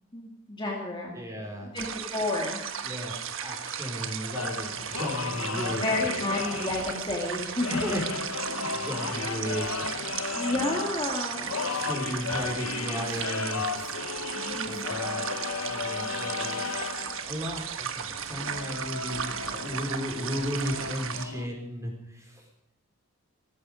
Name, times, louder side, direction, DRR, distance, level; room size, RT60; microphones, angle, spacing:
voice 1, 0.1-1.2 1.7-2.6 5.6-7.9 8.7-9.2 10.3-11.5 14.4-15.2, left 2 dB, 20° left, -1 dB, 2.2 m, -31 dB
voice 2, 1.1-1.7 2.8-5.8 7.7-8.0 8.4-9.9 10.2-10.7 11.7-13.6 14.6-16.9 17.2-22.4, equal, 15° right, -1 dB, 4.6 m, -35 dB
sound 1, 1.8-21.3, right 7 dB, 65° right, 1.3 m, -35 dB
sound 2, 4.3-21.5, left 5 dB, 75° left, 0.8 m, -35 dB
18.5 x 15.0 x 5.1 m, 0.86 s
head